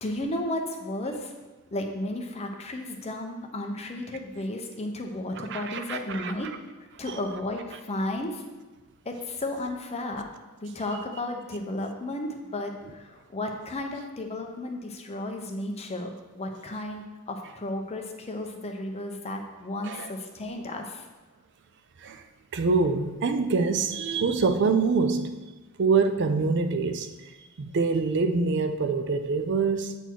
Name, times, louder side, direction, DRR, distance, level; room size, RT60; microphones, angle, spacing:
voice 1, 0.0-1.3 1.7-6.5 7.0-8.4 9.0-10.3 10.6-21.0, left 1 dB, 30° left, 3 dB, 0.7 m, -33 dB
voice 2, 5.5-6.3 19.9-20.1 22.0-22.2 22.5-25.4 25.8-27.1 27.6-30.0, right 4 dB, 55° right, 9 dB, 0.4 m, -25 dB
8.1 x 4.2 x 4.6 m, 1.2 s
head